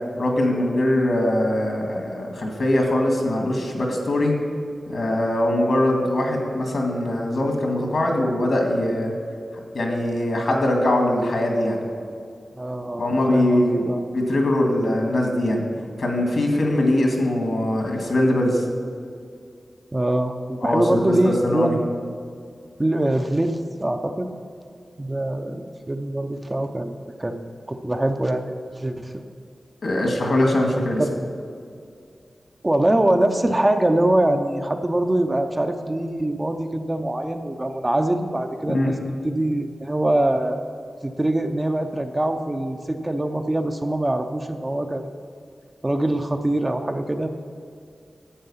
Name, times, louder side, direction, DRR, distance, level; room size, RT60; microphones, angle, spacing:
voice 1, 0.2-4.3 4.9-9.1 9.7-11.8 13.0-13.9 14.1-15.6 16.0-18.6 20.6-21.8 29.8-31.0 38.7-38.9, left 1 dB, 70° left, 1 dB, 2.0 m, -22 dB
voice 2, 12.6-14.0 19.9-21.9 22.8-24.3 25.0-26.9 27.2-27.4 27.7-29.2 31.0-31.1 32.6-38.9 39.2-40.6 41.0-45.0 45.8-47.3, right 1 dB, 20° right, 6 dB, 0.6 m, -23 dB
11.5 x 8.0 x 5.6 m, 2.3 s
wide cardioid pair, 125°, 0 cm